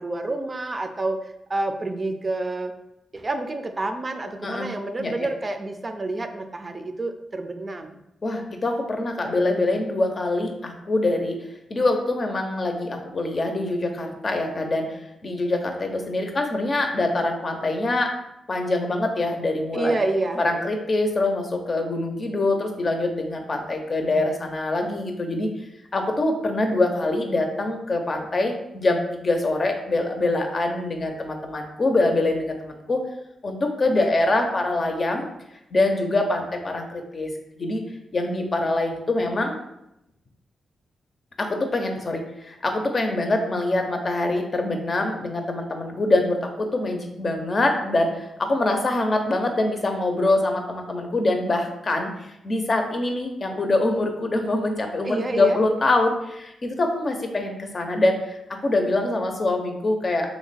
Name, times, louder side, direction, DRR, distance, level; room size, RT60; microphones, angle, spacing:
voice 1, 0.0-2.7 3.1-8.0 19.7-20.7 33.9-34.1 55.1-55.6, right 2 dB, 40° right, 7 dB, 0.4 m, -28 dB
voice 2, 8.2-11.4 11.7-18.1 18.5-20.0 20.4-25.5 25.9-33.0 33.4-35.2 35.7-37.3 37.6-37.8 38.1-39.5 41.4-60.3, left 2 dB, 50° left, 4 dB, 0.6 m, -24 dB
2.9 x 2.2 x 4.1 m, 0.84 s
supercardioid pair, 40°, 0 cm